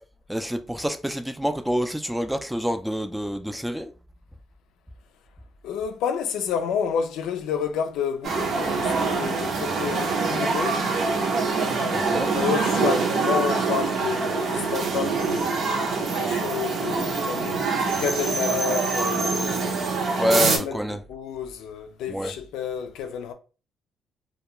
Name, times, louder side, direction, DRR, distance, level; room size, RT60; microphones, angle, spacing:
voice 1, 0.3-3.9 11.9-12.3 20.2-21.0 22.1-22.3, equal, 5° right, 0.3 m, -27 dB
voice 2, 5.6-10.8 11.9-23.3, left 7 dB, 90° left, 0.3 m, -30 dB
sound 1, 8.2-20.6, right 4 dB, 65° right, 0.6 m, -25 dB
2.3 x 2.2 x 2.9 m
cardioid pair, 90°, 0 cm